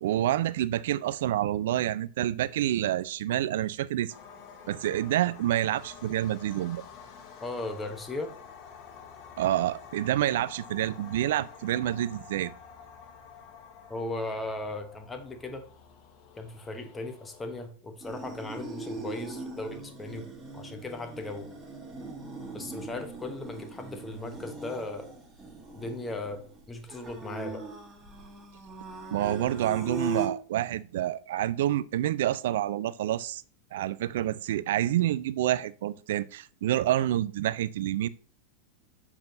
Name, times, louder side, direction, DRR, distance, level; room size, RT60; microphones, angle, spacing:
voice 1, 0.0-4.1 4.7-6.8 9.4-12.5 29.1-33.4 33.7-38.1, right 13 dB, 55° right, 0.3 m, -28 dB
sound 1, 4.1-17.7, left 6 dB, 40° left, 0.9 m, -49 dB
voice 2, 7.4-8.3 13.9-15.7 16.4-20.3 20.5-21.5 22.5-25.1 25.7-27.7, left 2 dB, 15° left, 1.0 m, -37 dB
sound 2, 18.0-30.3, right 2 dB, 15° right, 1.4 m, -40 dB
6.8 x 5.6 x 2.6 m
figure-of-eight pair, 90°, 0 cm